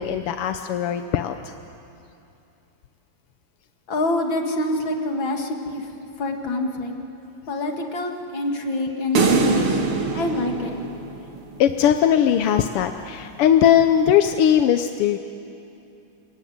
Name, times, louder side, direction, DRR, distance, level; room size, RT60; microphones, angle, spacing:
voice 1, 0.0-1.5 11.6-15.2, left 9 dB, 85° left, 8 dB, 1.8 m, -19 dB
voice 2, 3.9-5.9 6.2-6.9 7.5-9.8 10.1-10.8, left 1 dB, 60° left, 3 dB, 2.8 m, -26 dB
sound 1, 9.2-11.6, right 3 dB, 70° right, 2.8 m, -22 dB
27.0 x 23.0 x 9.4 m, 2.7 s
omnidirectional pair, 2.4 m